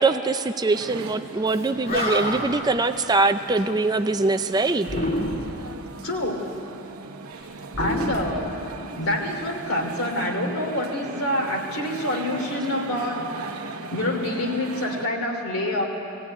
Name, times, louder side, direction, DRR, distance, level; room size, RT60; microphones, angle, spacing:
voice 1, 0.0-4.9, right 3 dB, 20° right, 9 dB, 0.5 m, -22 dB
sound 1, 0.7-15.1, right 4 dB, 80° right, 0.9 m, -39 dB
Animal, 1.5-1.6 1.8-2.7 4.8-5.7 7.7-9.0, equal, 40° left, 2.6 m, -28 dB
voice 2, 6.0-6.5 7.8-13.6 13.9-15.8, left 1 dB, 70° left, 2 dB, 3.1 m, -27 dB
19.5 x 16.0 x 9.6 m, 2.8 s
head